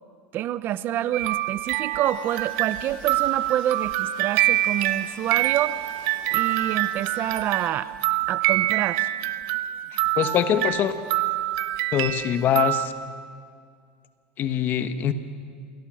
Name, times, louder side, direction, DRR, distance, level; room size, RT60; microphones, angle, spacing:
voice 1, 0.3-5.8 6.3-7.9 8.3-9.1, right 12 dB, 40° right, 15 dB, 0.7 m, -27 dB
sound 1, 1.1-12.9, right 15 dB, 60° right, 1.0 m, -26 dB
sound 2, 2.0-7.7, left 6 dB, 90° left, 3.5 m, -48 dB
voice 2, 10.2-10.9 11.9-12.9 14.4-15.1, left 10 dB, 40° left, 10 dB, 1.3 m, -23 dB
28.0 x 17.5 x 6.4 m, 2.1 s
supercardioid pair, 130°, 5 cm